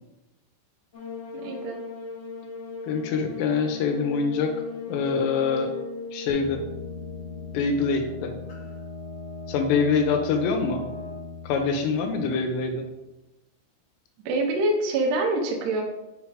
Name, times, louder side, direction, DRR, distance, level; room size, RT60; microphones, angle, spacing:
sound 1, 0.9-8.8, left 5 dB, 60° left, 1.2 m, -38 dB
voice 1, 1.4-1.8 14.3-15.8, right 2 dB, 80° right, 1 dB, 1.8 m, -25 dB
voice 2, 2.8-4.5 4.9-5.7 6.1-6.6 7.5-8.3 9.5-10.8 11.4-12.9, left 5 dB, 80° left, 4 dB, 2.9 m, -25 dB
sound 2, 6.3-12.9, left 3 dB, 65° right, 2.4 m, -39 dB
6.4 x 3.3 x 4.8 m, 1.0 s
omnidirectional pair, 4.9 m